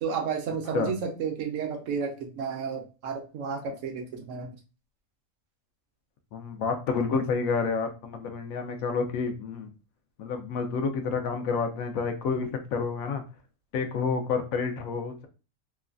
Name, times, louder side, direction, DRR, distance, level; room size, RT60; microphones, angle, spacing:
voice 1, 0.0-4.5, right 6 dB, 75° right, 4 dB, 1.0 m, -32 dB
voice 2, 6.3-9.7 10.2-13.2 13.7-15.3, left 5 dB, 85° left, 6 dB, 1.0 m, -29 dB
3.1 x 2.2 x 2.4 m, 0.33 s
omnidirectional pair, 1.4 m